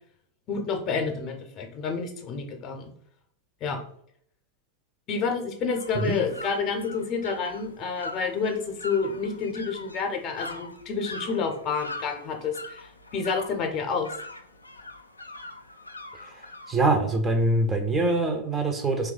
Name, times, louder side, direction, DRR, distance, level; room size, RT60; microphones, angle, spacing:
voice 1, 0.5-2.9 3.6-3.8 5.1-14.1, left 5 dB, 35° left, 4 dB, 0.6 m, -29 dB
sound 1, 5.7-16.7, left 2 dB, 80° left, 0.3 m, -42 dB
voice 2, 16.7-19.1, right 2 dB, 15° right, 5 dB, 0.4 m, -24 dB
2.8 x 2.3 x 3.7 m, 0.65 s
figure-of-eight pair, 90°, 0 cm